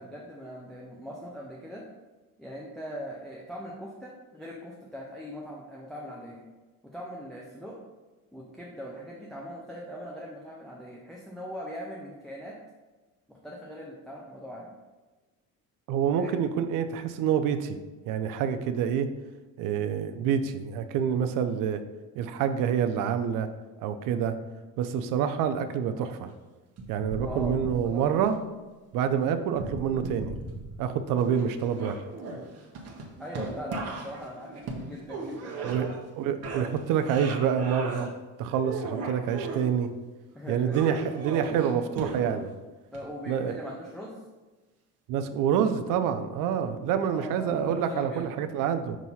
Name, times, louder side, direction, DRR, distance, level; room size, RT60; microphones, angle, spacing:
voice 1, 0.0-1.8 2.4-6.4 6.9-7.8 8.3-12.6 13.3-14.7 16.1-16.4 27.2-28.0 33.2-36.0 40.3-40.8 42.9-44.2 47.0-48.3, equal, ahead, -4 dB, 0.6 m, -40 dB
voice 2, 15.9-17.8 18.1-19.1 19.6-21.8 22.1-23.5 23.8-24.3 24.8-26.3 26.9-28.4 28.9-30.3 30.8-32.0 35.6-35.9 36.2-38.1 38.4-39.9 40.5-42.5 43.3-43.6 45.1-49.0, right 8 dB, 75° right, 9 dB, 0.6 m, -27 dB
sound 1, 26.8-28.3 29.5-30.9 31.2-36.1 36.4-38.1 38.5-39.6 40.7-42.5 42.9-43.0, right 3 dB, 50° right, 1.1 m, -37 dB
6.1 x 2.8 x 5.5 m, 1.2 s
cardioid pair, 140°, 33 cm